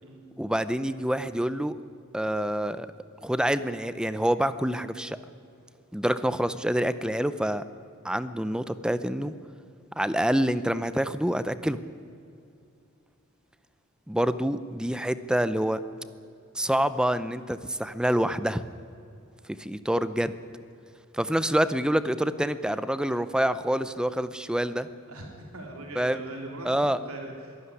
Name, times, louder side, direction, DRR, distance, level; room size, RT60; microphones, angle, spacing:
voice 1, 0.4-1.8 2.1-2.9 3.2-5.2 5.9-7.6 8.0-9.3 10.0-11.8 14.1-15.8 16.5-18.6 19.6-20.3 21.1-24.9 26.0-26.2 26.7-27.0, equal, 5° right, 14 dB, 0.6 m, -26 dB
voice 2, 25.1-27.7, right 1 dB, 85° right, 1 dB, 3.5 m, -41 dB
23.0 x 12.5 x 9.8 m, 2.5 s
head